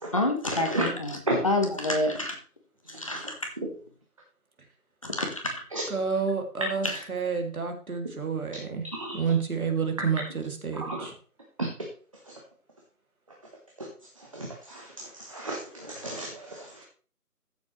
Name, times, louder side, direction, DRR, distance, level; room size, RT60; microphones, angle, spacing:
voice 1, 0.1-1.2 1.4-2.3 3.0-3.3 5.0-5.5, left 2 dB, 20° left, 3 dB, 1.1 m, -27 dB
voice 2, 5.9-8.8 9.1-11.1, right 5 dB, 60° right, 4 dB, 2.7 m, -29 dB
voice 3, 10.7-11.1 11.6-11.7 12.3-12.4 13.8-13.9 14.2-16.8, right 1 dB, 20° right, -1 dB, 1.1 m, -33 dB
14.5 x 7.1 x 3.2 m, 0.41 s
figure-of-eight pair, 165°, 47 cm